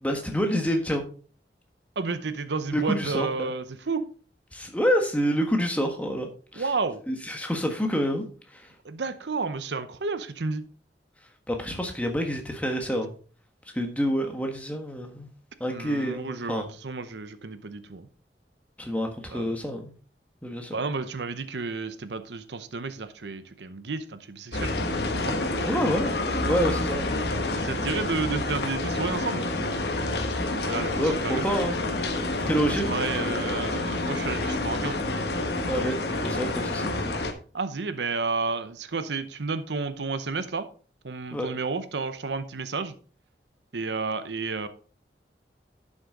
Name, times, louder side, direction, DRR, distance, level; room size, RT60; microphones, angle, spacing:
voice 1, 0.0-1.0 2.7-3.5 4.5-6.7 7.1-8.2 8.5-8.7 11.5-13.1 13.7-15.3 15.6-16.7 18.8-19.9 20.4-20.8 25.6-27.2 30.6-31.8 32.4-33.0 35.7-36.9 41.3-41.5, equal, 10° left, 3 dB, 1.4 m, -28 dB
voice 2, 2.0-4.1 6.6-7.0 8.8-10.6 15.7-18.1 19.3-19.5 20.7-25.4 27.5-29.5 30.7-31.4 32.6-35.0 37.5-40.7 41.0-42.9 43.7-44.7, right 4 dB, 85° right, 12 dB, 0.8 m, -31 dB
sound 1, 24.5-37.3, left 2 dB, 75° left, 1.4 m, -28 dB
11.0 x 6.3 x 3.8 m, 0.40 s
head